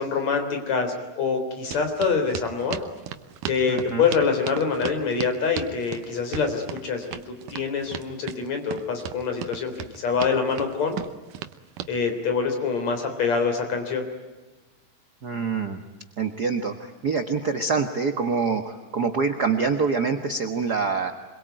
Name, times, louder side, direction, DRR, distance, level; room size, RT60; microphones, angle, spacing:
voice 1, 0.0-2.8 3.5-11.0 11.9-14.1, left 5 dB, 55° left, 6 dB, 4.7 m, -25 dB
sound 1, 1.7-11.9, right 11 dB, 75° right, 2.6 m, -36 dB
voice 2, 3.7-4.1 15.2-15.8 16.2-21.1, right 5 dB, 55° right, 6 dB, 1.1 m, -25 dB
26.5 x 22.5 x 9.2 m, 1.2 s
omnidirectional pair, 3.9 m